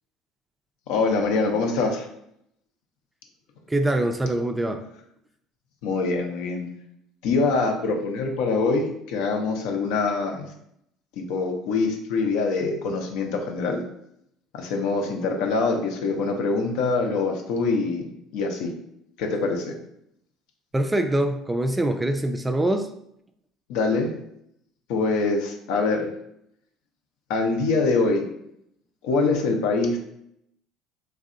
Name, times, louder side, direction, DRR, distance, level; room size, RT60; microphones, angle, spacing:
voice 1, 0.9-2.1 5.8-6.7 7.2-10.5 11.2-13.8 14.5-18.7 19.2-19.7 23.7-24.1 24.9-26.1 27.3-28.3 29.0-30.0, left 3 dB, 75° left, 3 dB, 0.6 m, -24 dB
voice 2, 3.7-4.8 20.7-22.9, right 1 dB, 15° right, 7 dB, 0.3 m, -24 dB
3.2 x 2.6 x 2.5 m, 0.75 s
supercardioid pair, 80°, 0 cm